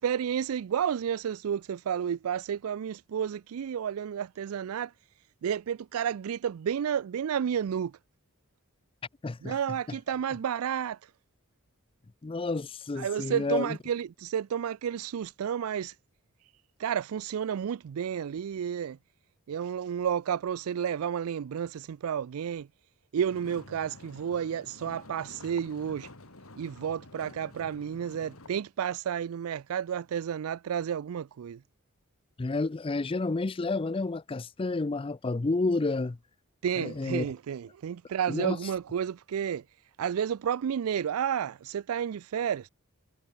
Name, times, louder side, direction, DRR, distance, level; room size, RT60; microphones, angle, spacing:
voice 1, 0.0-4.9 5.4-7.9 9.4-11.1 13.0-15.9 16.8-19.0 19.5-22.7 23.1-26.1 26.6-31.6 36.6-39.6 40.0-42.7, right 8 dB, 75° right, 0.4 m, -31 dB
voice 2, 9.2-9.6 9.9-10.0 12.2-13.8 32.4-36.2 36.8-37.3 38.3-38.6, left 3 dB, 25° left, 0.4 m, -30 dB
sound 1, 23.3-28.5, left 2 dB, 75° left, 4.2 m, -49 dB
head